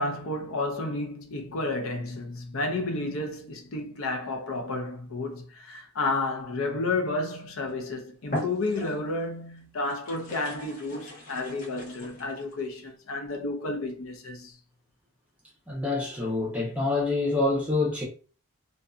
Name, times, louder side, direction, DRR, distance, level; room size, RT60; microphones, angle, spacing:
voice 1, 0.0-14.6, left 2 dB, 65° left, 0.6 m, -31 dB
sound 1, 7.7-7.8 8.2-9.2 9.8-12.6, left 1 dB, 35° left, 0.8 m, -38 dB
voice 2, 15.7-18.0, left 2 dB, 5° right, 0.7 m, -26 dB
2.6 x 2.3 x 2.3 m
head